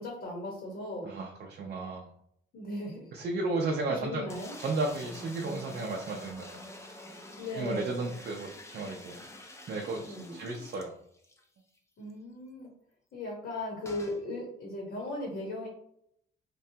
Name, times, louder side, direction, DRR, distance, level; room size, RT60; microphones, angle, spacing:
voice 1, 0.0-1.1 2.5-3.1 4.0-4.6 7.4-8.0 10.0-10.3 12.0-12.7 13.1-15.7, left 2 dB, 60° left, -2 dB, 1.0 m, -37 dB
voice 2, 1.0-2.1 3.1-4.3 4.6-6.6 7.5-9.2 9.7-10.9, right 3 dB, 55° right, 0 dB, 0.5 m, -34 dB
sound 1, 4.3-11.4 11.8-11.9 12.1-12.2 13.8-14.2, left 1 dB, 15° left, 0.5 m, -47 dB
3.0 x 2.2 x 2.7 m, 0.71 s
cardioid pair, 90°, 20 cm